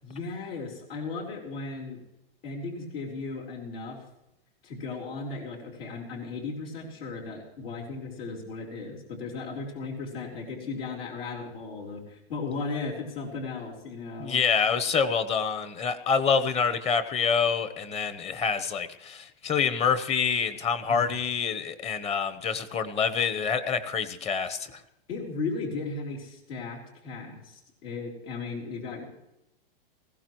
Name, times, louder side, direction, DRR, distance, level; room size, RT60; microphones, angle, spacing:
voice 1, 0.0-2.0 2.4-4.0 4.6-14.4 20.9-21.1 25.1-29.1, left 4 dB, 80° left, -1 dB, 4.0 m, -36 dB
voice 2, 14.2-24.8, left 6 dB, 20° left, 12 dB, 1.0 m, -27 dB
20.0 x 16.0 x 3.1 m, 0.88 s
hypercardioid pair, 135°, 29 cm